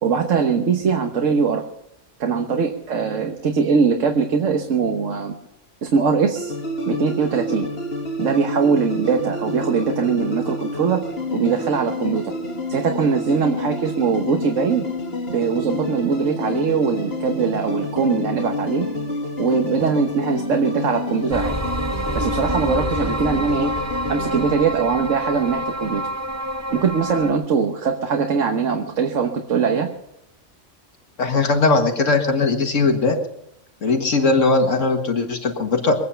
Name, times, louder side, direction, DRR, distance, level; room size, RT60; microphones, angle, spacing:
voice 1, 0.0-1.6 2.2-5.3 5.8-6.5 6.9-7.7 8.2-11.0 11.3-12.3 12.7-14.9 15.3-18.9 19.4-21.5 22.1-23.7 24.1-26.0 26.7-29.9, right 5 dB, 90° right, 4 dB, 1.5 m, -21 dB
sound 1, 6.4-24.5, left 2 dB, 55° left, 2.7 m, -29 dB
sound 2, 21.3-27.3, right 1 dB, 20° right, 0.5 m, -27 dB
voice 2, 31.2-33.2 33.8-36.0, left 3 dB, 80° left, 4 dB, 2.1 m, -19 dB
23.5 x 9.3 x 5.7 m, 0.79 s
omnidirectional pair, 1.3 m